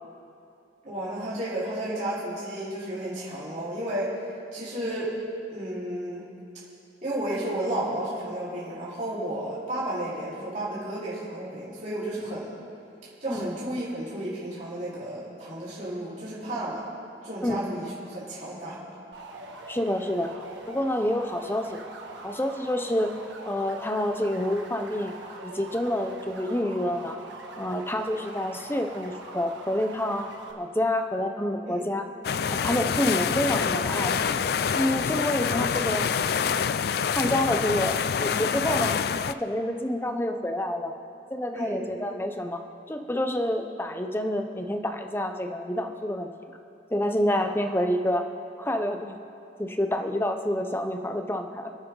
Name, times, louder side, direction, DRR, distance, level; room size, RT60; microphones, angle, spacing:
voice 1, 0.8-4.1 4.5-5.1 5.5-6.2 7.0-12.5 13.2-16.8 17.2-18.8 31.7-31.9 41.5-41.8, right 1 dB, 40° right, -10 dB, 4.4 m, -32 dB
sound 1, 19.1-30.5, right 3 dB, 80° right, 1.5 m, -43 dB
voice 2, 19.7-20.3 20.7-21.8 22.2-23.1 23.4-25.1 25.4-27.2 27.6-30.3 30.6-32.1 32.5-34.3 34.7-36.1 36.4-36.6 37.1-39.0 39.3-40.9 41.3-42.6 42.9-46.3 46.9-48.2 48.6-49.2 49.6-51.7, left 1 dB, 10° left, 5 dB, 0.8 m, -28 dB
sound 2, 32.2-39.3, left 6 dB, 55° left, 0.4 m, -26 dB
28.0 x 9.5 x 3.9 m, 2.7 s
head